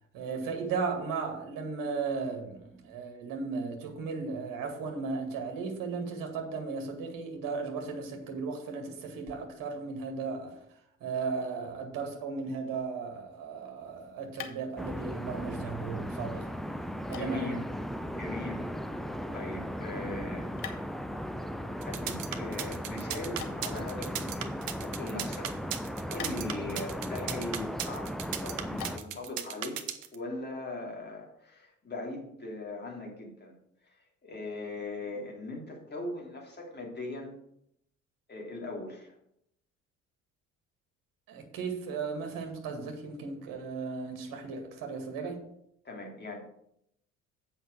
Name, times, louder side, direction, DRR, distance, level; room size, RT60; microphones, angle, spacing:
voice 1, 0.1-10.6 11.0-16.5 17.1-17.6 41.3-45.4, right 4 dB, 60° right, 2.2 m, -36 dB
sound 1, 13.7-29.3, left 9 dB, 55° left, 1.2 m, -51 dB
sound 2, 14.8-29.0, equal, ahead, 0.6 m, -37 dB
voice 2, 17.1-17.6 18.1-18.7 19.3-20.5 21.8-25.5 26.1-28.1 28.4-29.8 30.1-33.5 33.9-37.3 38.3-39.1 45.8-46.4, left 2 dB, 25° left, 3.2 m, -40 dB
sound 3, 21.8-30.1, right 11 dB, 75° right, 0.8 m, -36 dB
7.9 x 5.7 x 6.5 m
figure-of-eight pair, 55°, 38 cm